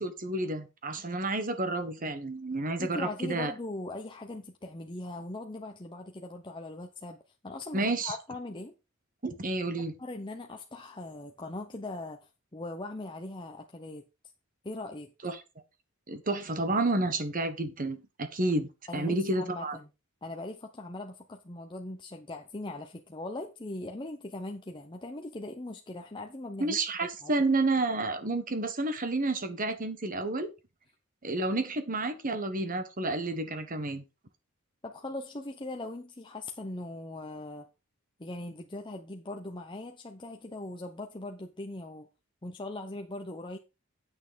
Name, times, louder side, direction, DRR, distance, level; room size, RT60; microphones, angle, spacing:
voice 1, 0.0-3.5 7.7-8.2 9.2-9.9 15.2-15.4 16.1-19.8 26.6-30.5 31.2-34.0, right 2 dB, 40° right, 1.4 m, -30 dB
voice 2, 2.8-7.2 7.4-8.7 9.8-14.0 14.6-15.1 18.9-19.9 20.2-27.3 34.8-37.7 38.2-42.1 42.4-43.6, left 2 dB, 20° left, 0.8 m, -40 dB
8.6 x 6.6 x 5.2 m
head